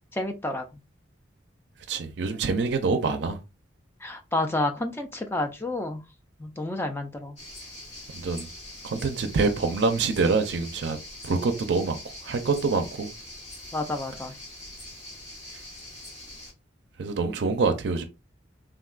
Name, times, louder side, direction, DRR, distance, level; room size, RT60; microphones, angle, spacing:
voice 1, 0.1-0.6 4.0-6.0 6.4-7.4 13.7-14.3, left 2 dB, 10° left, 0.4 m, -30 dB
voice 2, 1.9-3.4 8.1-8.5 8.8-11.0 11.2-12.0 12.2-13.1 17.0-18.0, right 4 dB, 60° right, 0.4 m, -25 dB
sound 1, 7.4-16.5, left 1 dB, 35° left, 1.3 m, -43 dB
3.5 x 2.2 x 2.3 m
head